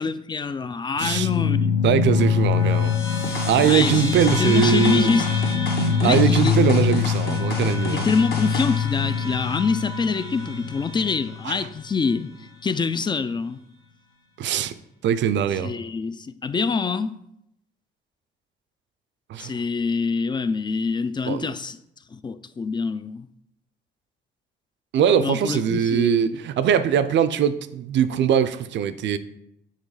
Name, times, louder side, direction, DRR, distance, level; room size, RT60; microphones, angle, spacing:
voice 1, 0.0-1.8 3.6-5.2 6.0-6.6 7.9-12.3 12.6-13.6 15.6-17.2 19.4-21.8 22.1-23.3 25.2-26.3, left 5 dB, 25° left, 0.3 m, -25 dB
sound 1, 1.0-11.8, left 6 dB, 75° left, 1.7 m, -24 dB
voice 2, 1.0-1.3 1.8-2.9 3.4-5.1 6.0-8.1 11.4-11.7 14.4-14.7 15.0-15.7 19.3-19.5 21.3-21.5 24.9-29.2, right 9 dB, 65° right, 0.5 m, -21 dB
sound 2, 3.2-8.8, left 2 dB, 50° left, 1.1 m, -31 dB
6.5 x 3.0 x 4.8 m
cardioid pair, 90°, 20 cm